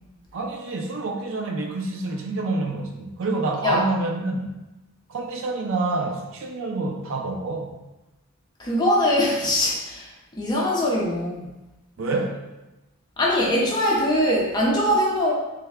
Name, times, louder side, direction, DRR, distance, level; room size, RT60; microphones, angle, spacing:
voice 1, 0.3-4.5 5.1-7.8 12.0-12.4, right 2 dB, 65° right, 3 dB, 0.4 m, -27 dB
voice 2, 8.6-10.1 10.4-11.4 13.2-15.3, left 1 dB, 20° left, -4 dB, 0.6 m, -22 dB
3.3 x 2.1 x 3.5 m, 1.0 s
head